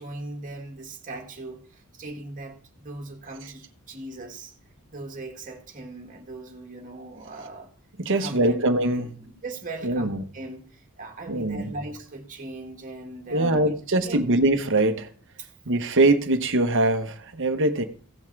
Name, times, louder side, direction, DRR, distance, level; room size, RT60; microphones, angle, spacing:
voice 1, 0.0-4.5 4.9-7.7 8.1-10.1 10.3-14.3 15.4-15.5, right 2 dB, 35° right, 1.9 m, -39 dB
voice 2, 8.0-9.1 9.8-10.2 11.3-11.7 13.3-15.1 15.7-17.8, right 2 dB, 55° right, 1.1 m, -22 dB
16.0 x 5.5 x 4.7 m
head